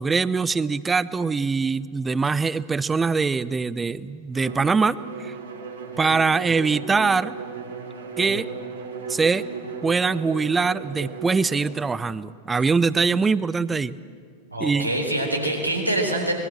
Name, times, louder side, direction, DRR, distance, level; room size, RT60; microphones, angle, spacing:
voice 1, 0.0-5.0 5.2-5.3 6.0-7.3 8.2-8.5 9.1-9.4 9.8-14.0 14.6-14.9, right 4 dB, 15° right, 18 dB, 0.6 m, -23 dB
Bowed string instrument, 4.3-11.8, right 5 dB, 65° right, 3.1 m, -36 dB
voice 2, 14.5-16.3, right 1 dB, 90° right, 1 dB, 4.1 m, -25 dB
24.5 x 21.5 x 7.7 m, 2.1 s
figure-of-eight pair, 90°, 0 cm